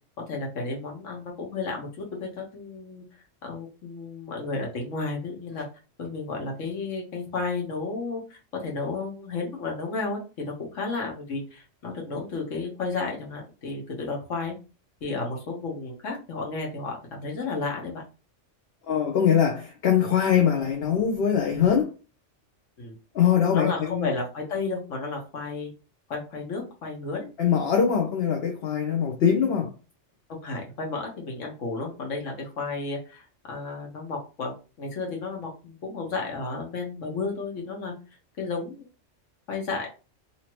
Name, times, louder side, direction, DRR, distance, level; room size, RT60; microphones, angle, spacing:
voice 1, 0.3-3.0 3.4-5.7 6.0-14.5 15.0-18.0 22.8-22.9 23.5-25.7 26.1-27.3 30.4-37.9 38.4-38.9 39.5-39.9, left 3 dB, 90° left, 1.4 m, -32 dB
voice 2, 18.9-21.9 23.1-24.1 27.4-29.7, left 8 dB, 65° left, 0.8 m, -22 dB
2.8 x 2.8 x 3.0 m
omnidirectional pair, 1.2 m